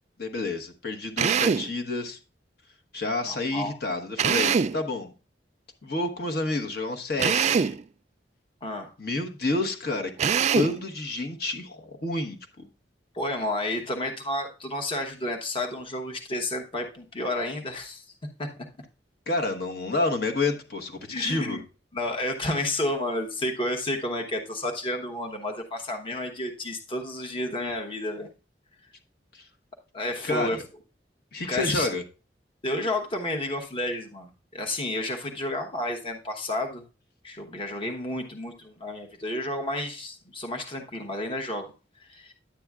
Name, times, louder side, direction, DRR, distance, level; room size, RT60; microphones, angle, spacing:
voice 1, 0.2-2.2 2.9-5.1 5.8-7.8 9.0-12.7 19.3-21.6 29.3-29.5 30.2-30.6 31.3-32.0, left 2 dB, 60° left, 5 dB, 1.1 m, -29 dB
Drill, 1.2-1.7 4.2-4.8 7.2-7.8 10.2-10.8, right 6 dB, 40° right, 0.3 m, -23 dB
voice 2, 3.3-3.7 8.6-8.9 13.1-18.0 18.4-18.5 21.1-21.6 21.9-28.3 29.9-30.6 31.5-31.9 32.6-36.8 37.2-41.7 42.0-42.3, left 1 dB, 30° left, 2 dB, 1.1 m, -31 dB
10.5 x 8.6 x 2.4 m, 0.32 s
head